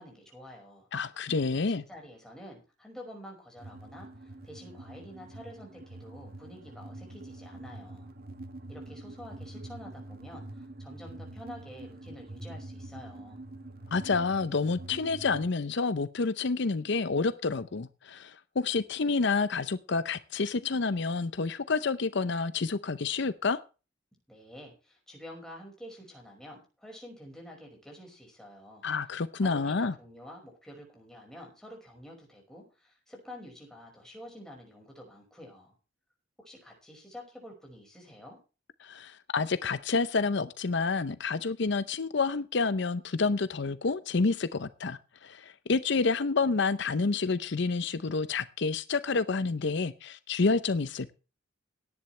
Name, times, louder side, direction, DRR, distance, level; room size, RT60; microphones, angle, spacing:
voice 1, 0.0-0.9 1.6-8.1 8.7-13.4 24.3-28.8 29.4-35.7 36.4-38.4, equal, 5° left, -1 dB, 5.4 m, -48 dB
voice 2, 0.9-1.8 13.9-23.6 28.8-29.9 38.8-51.1, left 4 dB, 65° left, 14 dB, 0.7 m, -29 dB
sound 1, 3.6-15.4, right 2 dB, 50° right, 1.7 m, -45 dB
17.5 x 10.5 x 3.3 m, 0.32 s
head